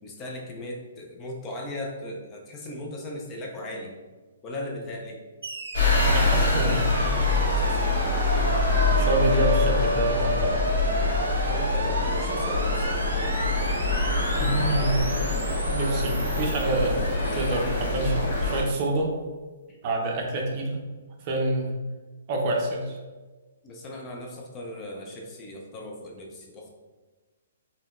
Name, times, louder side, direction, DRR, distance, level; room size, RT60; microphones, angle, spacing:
voice 1, 0.0-4.0 4.4-5.2 11.5-13.0 17.8-18.0 19.7-19.8 23.6-26.7, left 1 dB, 20° left, 0 dB, 0.4 m, -37 dB
sound 1, 5.4-17.7, right 3 dB, 90° right, 0.4 m, -32 dB
sound 2, 5.7-18.6, left 3 dB, 70° left, 1.1 m, -25 dB
voice 2, 6.0-6.9 8.3-10.5 14.4-15.0 15.7-17.0 17.3-19.1 19.8-20.8 21.2-21.7 22.3-23.0, right 2 dB, 35° right, 0 dB, 0.5 m, -27 dB
3.7 x 2.1 x 2.4 m, 1.3 s
hypercardioid pair, 150°, 0 cm